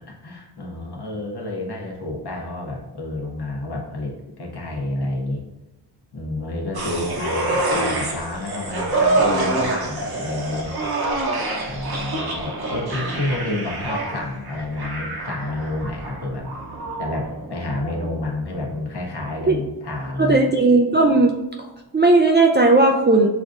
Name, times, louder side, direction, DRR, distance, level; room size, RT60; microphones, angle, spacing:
voice 1, 0.2-5.4 6.1-10.7 11.7-16.5 17.0-20.5, left 2 dB, 65° left, 0 dB, 1.1 m, -29 dB
sound 1, 6.7-18.3 18.6-18.7, right 2 dB, 60° right, 0.9 m, -26 dB
voice 2, 20.2-21.3 21.6-21.7 21.9-23.3, right 2 dB, 25° right, 1 dB, 0.4 m, -16 dB
7.0 x 2.6 x 2.4 m, 0.99 s
wide cardioid pair, 65°, 42 cm